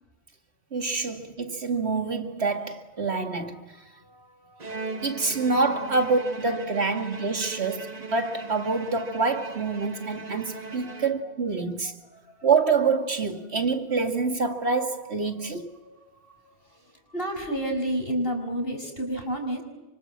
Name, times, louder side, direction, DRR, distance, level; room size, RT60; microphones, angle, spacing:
voice 1, 0.7-3.6 5.0-11.9 12.4-15.7, right 4 dB, 80° right, 2.6 m, -26 dB
voice 2, 3.5-5.6 10.7-11.0 11.6-12.5 15.3-19.6, right 1 dB, 60° left, 6.2 m, -33 dB
Bowed string instrument, 4.6-11.6, right 4 dB, 40° right, 1.4 m, -39 dB
29.5 x 25.5 x 7.5 m
omnidirectional pair, 1.1 m